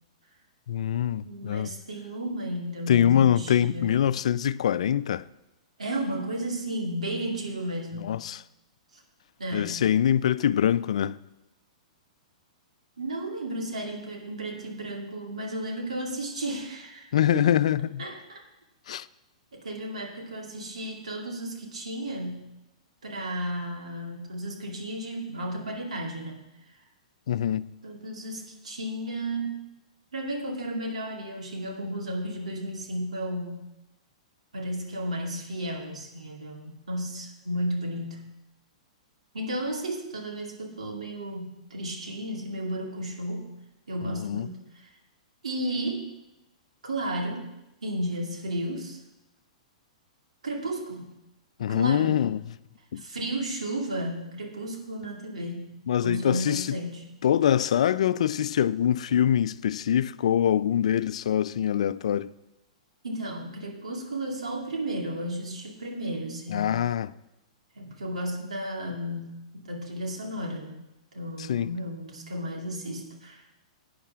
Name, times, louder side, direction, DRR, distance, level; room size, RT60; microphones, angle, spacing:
voice 1, 0.7-1.7 2.9-5.2 8.0-8.4 9.5-11.1 17.1-18.0 18.9-19.0 27.3-27.7 44.0-44.5 51.6-52.4 52.9-53.0 55.9-56.8 57.2-62.3 66.5-67.1 71.5-71.7, left 10 dB, 65° left, 0.3 m, -24 dB
voice 2, 1.2-4.0 5.8-8.2 8.9-9.0 9.4-9.8 13.0-17.5 18.0-18.4 19.5-22.4 23.0-26.8 27.8-29.8 30.1-33.7 34.5-38.3 39.3-43.5 43.9-44.9 45.4-46.1 46.8-47.5 47.8-49.0 50.4-51.1 51.7-52.3 52.9-55.7 56.0-57.1 58.0-58.1 63.0-66.8 67.7-73.4, right 1 dB, 85° right, 2.5 m, -33 dB
17.0 x 9.5 x 2.4 m
hypercardioid pair, 115°, 4 cm